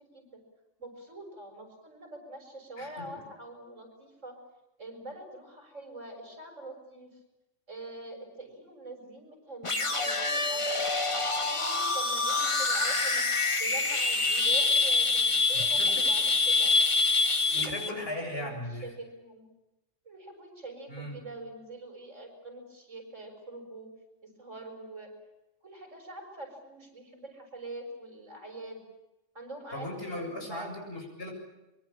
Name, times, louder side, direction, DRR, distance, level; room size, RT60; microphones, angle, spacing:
voice 1, 0.1-0.4 0.8-4.4 4.8-7.2 7.7-10.9 11.4-13.3 13.6-16.7 17.5-19.4 20.1-23.9 24.2-25.1 25.6-28.8 29.4-30.7, right 2 dB, 85° right, 4 dB, 7.0 m, -44 dB
voice 2, 2.8-3.2 15.5-16.1 17.5-18.9 20.9-21.1 29.7-31.3, left 1 dB, 55° left, 2 dB, 8.0 m, -38 dB
sound 1, 9.6-17.9, left 3 dB, 25° left, 1.5 m, -26 dB
24.0 x 23.5 x 8.9 m, 0.96 s
omnidirectional pair, 1.2 m